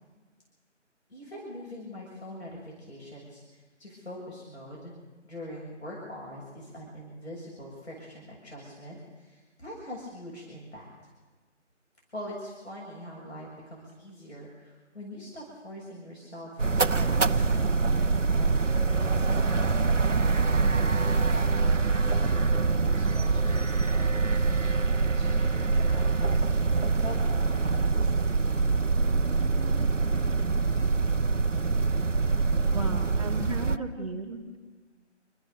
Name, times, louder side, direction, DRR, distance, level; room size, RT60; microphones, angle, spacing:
voice 1, 1.1-4.9 5.2-10.9 12.1-19.9 20.8-27.4 27.7-28.4, left 1 dB, 60° left, -4 dB, 7.1 m, -43 dB
sound 1, 16.6-33.8, right 4 dB, 90° right, 1.0 m, -25 dB
voice 2, 32.7-34.6, right 2 dB, 30° right, -1 dB, 2.7 m, -35 dB
28.5 x 13.5 x 6.9 m, 1.4 s
figure-of-eight pair, 165°, 37 cm